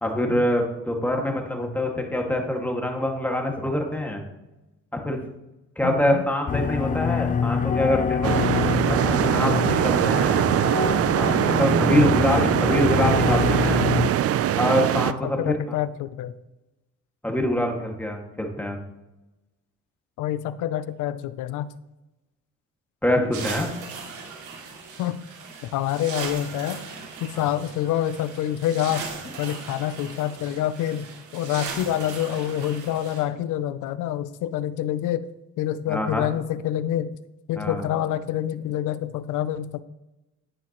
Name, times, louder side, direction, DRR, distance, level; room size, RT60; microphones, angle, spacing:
voice 1, 0.0-4.2 4.9-5.2 5.8-8.4 9.1-10.4 11.2-13.9 14.5-15.6 17.2-18.8 23.0-23.7 27.3-27.5 35.9-36.3 37.6-37.8, left 1 dB, 5° left, 1 dB, 2.0 m, -25 dB
voice 2, 5.8-6.2 11.9-12.3 15.1-16.3 20.2-21.7 25.0-25.2 25.6-26.8 27.2-29.1 29.4-35.3 35.6-37.1 37.5-39.8, left 11 dB, 85° left, 15 dB, 0.5 m, -27 dB
sound 1, 6.5-14.1, left 6 dB, 25° left, 0.4 m, -26 dB
sound 2, 8.2-15.1, right 11 dB, 50° right, 0.5 m, -22 dB
sound 3, 23.3-33.2, right 5 dB, 80° right, 2.6 m, -38 dB
10.0 x 9.5 x 3.0 m, 0.98 s
cardioid pair, 90°, 30 cm